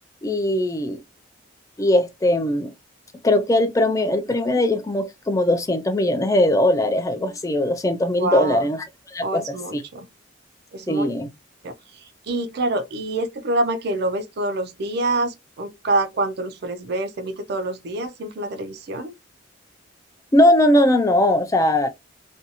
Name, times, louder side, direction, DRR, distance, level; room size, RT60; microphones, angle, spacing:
voice 1, 0.2-1.0 1.8-2.7 3.2-8.9 9.1-9.4 9.7-9.8 10.9-11.3 20.3-21.9, left 1 dB, 15° left, 0.3 m, -20 dB
voice 2, 8.2-8.7 9.2-10.1 10.7-11.1 11.6-19.1, right 2 dB, 55° right, 0.4 m, -26 dB
2.6 x 2.3 x 2.7 m
head